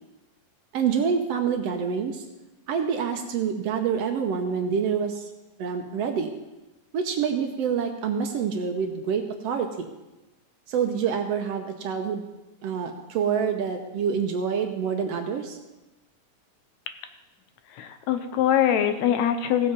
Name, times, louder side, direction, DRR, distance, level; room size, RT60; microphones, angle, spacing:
voice 1, 0.7-2.2 2.7-5.3 5.6-6.3 6.9-9.9 10.7-12.2 12.6-15.6, right 7 dB, 70° right, 5 dB, 1.8 m, -27 dB
voice 2, 17.7-19.7, left 10 dB, 75° left, 8 dB, 2.0 m, -23 dB
16.0 x 7.6 x 5.3 m, 1.0 s
omnidirectional pair, 3.4 m